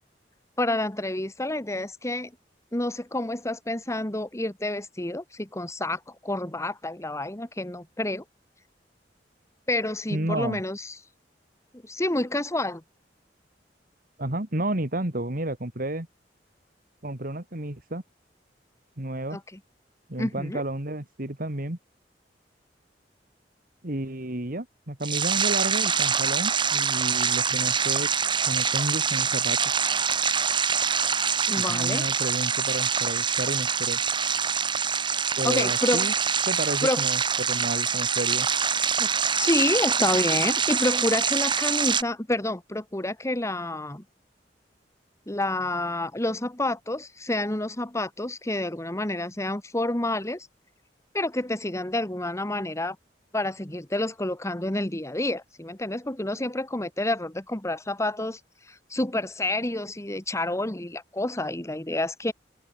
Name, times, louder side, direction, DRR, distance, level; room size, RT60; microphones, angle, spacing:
voice 1, 0.6-2.3 2.7-8.2 9.7-10.9 11.8-12.8 19.3-19.4 20.2-20.6 31.5-32.1 35.4-36.1 36.8-37.1 39.0-39.1 39.4-44.0 45.3-50.5 51.1-53.0 53.3-58.4 58.7-62.3, left 1 dB, 15° left, 1.7 m, -28 dB
voice 2, 10.1-10.6 14.2-16.1 17.0-18.0 19.0-19.4 20.1-21.8 23.8-28.1 28.5-29.6 31.6-34.0 35.4-36.1 36.5-38.5, right 1 dB, 55° right, 2.6 m, -31 dB
sound 1, 25.0-42.0, right 6 dB, 30° right, 1.3 m, -25 dB
open air
head